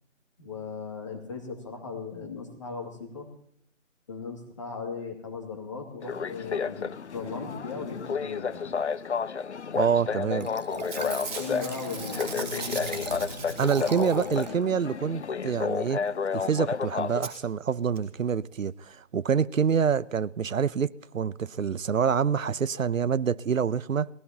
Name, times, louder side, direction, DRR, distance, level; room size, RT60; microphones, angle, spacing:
voice 1, 0.4-3.3 4.1-8.7 10.1-14.7, left 4 dB, 25° left, 2.4 m, -38 dB
sound 1, 6.0-17.3, left 6 dB, 60° left, 0.6 m, -31 dB
voice 2, 9.7-10.5 13.6-16.0 16.3-24.1, right 7 dB, 85° right, 0.8 m, -26 dB
Packing tape duct tape / Tearing, 10.2-10.5 10.7-14.3 16.3-16.4 16.5-16.6 17.2-17.3 18.0-18.1 18.3-18.4, right 3 dB, 5° right, 2.1 m, -38 dB
Liquid, 10.4-14.6 15.0-15.1, right 3 dB, 35° right, 1.0 m, -41 dB
21.5 x 17.0 x 2.9 m
figure-of-eight pair, 175°, 39 cm